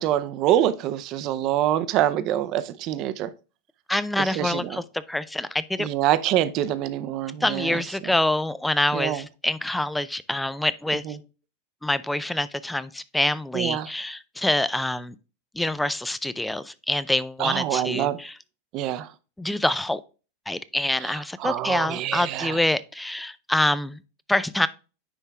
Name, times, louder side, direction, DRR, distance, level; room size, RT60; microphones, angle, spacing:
voice 1, 0.0-3.3 4.2-4.8 5.8-7.8 8.9-9.2 11.1-11.2 13.5-13.9 17.4-18.2 18.7-19.1 21.0-22.6, right 12 dB, 40° right, 0.6 m, -25 dB
voice 2, 3.9-5.9 7.4-11.0 11.8-15.1 15.6-18.3 19.4-20.0 20.5-24.0 24.3-24.7, left 1 dB, 5° left, 0.4 m, -26 dB
9.8 x 3.5 x 3.5 m
supercardioid pair, 145°, 0 cm